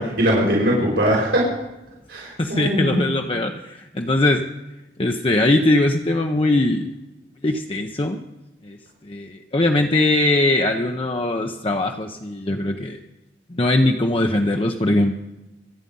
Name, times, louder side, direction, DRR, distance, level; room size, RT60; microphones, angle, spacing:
voice 1, 0.2-1.4 2.1-3.1, equal, 85° right, -4 dB, 5.2 m, -20 dB
voice 2, 2.4-4.4 5.0-6.9 7.4-8.2 8.6-8.8 9.0-13.0 13.5-15.1, left 2 dB, 30° left, 3 dB, 0.8 m, -21 dB
26.5 x 9.0 x 5.5 m, 1.0 s
head